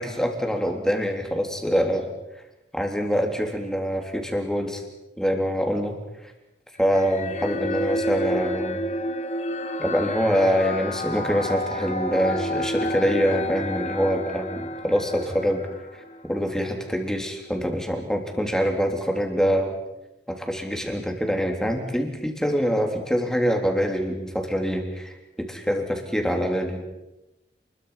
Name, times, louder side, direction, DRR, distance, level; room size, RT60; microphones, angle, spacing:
voice 1, 0.0-2.1 2.7-4.8 5.2-6.0 6.2-6.3 6.8-8.8 9.8-15.6 15.9-19.7 20.3-26.8, equal, 5° left, 3 dB, 3.6 m, -25 dB
sound 1, 6.9-16.4, left 1 dB, 40° left, 1.5 m, -30 dB
29.0 x 22.0 x 5.9 m, 0.97 s
head